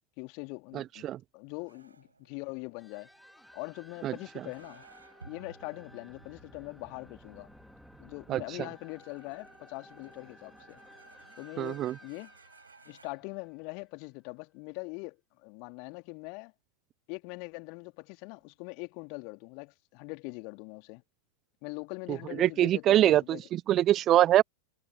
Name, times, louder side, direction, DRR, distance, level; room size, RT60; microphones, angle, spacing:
voice 1, 0.2-1.0 1.3-3.1 3.5-4.9 5.2-7.5 8.0-10.8 11.4-12.3 12.8-16.5 17.1-21.0 21.6-23.5, left 35 dB, 45° left, 2.8 m, -42 dB
voice 2, 0.7-1.2 4.0-4.1 8.3-8.4 11.6-11.9 22.1-24.4, right 13 dB, 30° right, 0.4 m, -24 dB
sound 1, 1.7-13.1, right 4 dB, 75° right, 5.3 m, -58 dB
sound 2, 2.8-14.0, equal, ahead, 3.8 m, -56 dB
figure-of-eight pair, 90°, 0 cm